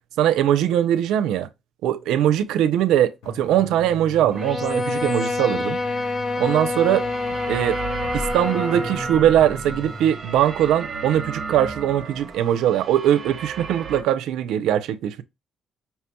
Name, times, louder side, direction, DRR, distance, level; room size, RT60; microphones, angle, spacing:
voice 1, 0.2-1.5 1.8-5.8 6.4-7.1 7.5-7.8 8.1-15.2, right 11 dB, 90° right, 0.4 m, -21 dB
sound 1, 3.2-10.1, left 4 dB, 90° left, 1.0 m, -40 dB
Bowed string instrument, 4.3-9.2, left 3 dB, 40° left, 0.4 m, -27 dB
sound 2, 4.4-14.0, right 4 dB, 45° right, 0.6 m, -34 dB
5.6 x 2.2 x 2.9 m
cardioid pair, 90°, 0 cm